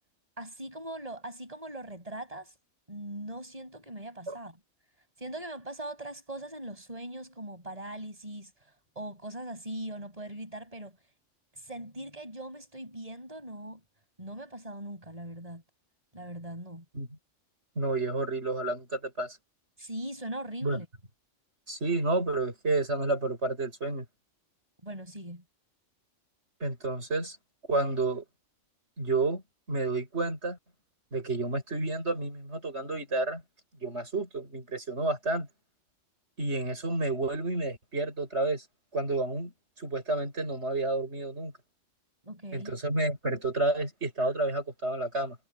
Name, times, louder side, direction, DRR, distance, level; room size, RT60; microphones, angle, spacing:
voice 1, 0.4-2.5 2.9-4.6 5.2-8.5 9.0-11.0 11.5-13.8 14.2-15.6 16.1-16.8 19.8-20.9 24.8-25.4 42.2-42.8, right 1 dB, 30° right, 6.2 m, -40 dB
voice 2, 17.7-19.4 20.6-20.8 21.7-24.0 26.6-27.4 27.7-28.2 29.0-29.4 29.7-30.6 31.1-33.4 33.8-35.5 36.4-38.6 38.9-39.5 39.8-41.5 42.5-45.4, right 2 dB, 60° right, 6.9 m, -30 dB
omnidirectional pair, 1.3 m